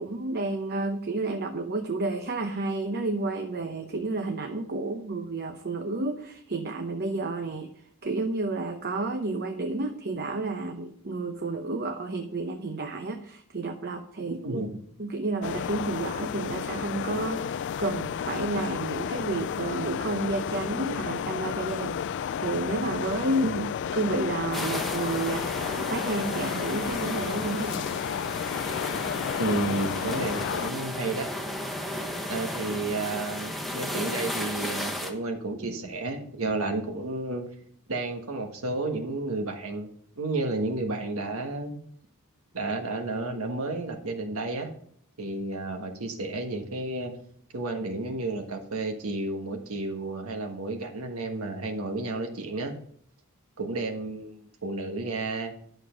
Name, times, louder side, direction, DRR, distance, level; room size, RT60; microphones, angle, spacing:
voice 1, 0.0-7.7 8.0-14.6 15.0-23.6 23.9-27.9, right 2 dB, 45° right, 5 dB, 0.8 m, -31 dB
voice 2, 14.3-14.8 23.4-23.7 29.4-31.3 32.3-37.4 37.9-39.9 40.2-41.8 42.5-44.7 45.2-47.1 47.5-52.7 53.6-55.6, right 2 dB, 65° right, 4 dB, 1.5 m, -31 dB
sound 1, 15.4-30.7, left 8 dB, 55° left, 0.3 m, -32 dB
sound 2, 24.5-35.1, left 1 dB, ahead, 1.1 m, -34 dB
11.0 x 6.7 x 5.1 m, 0.62 s
head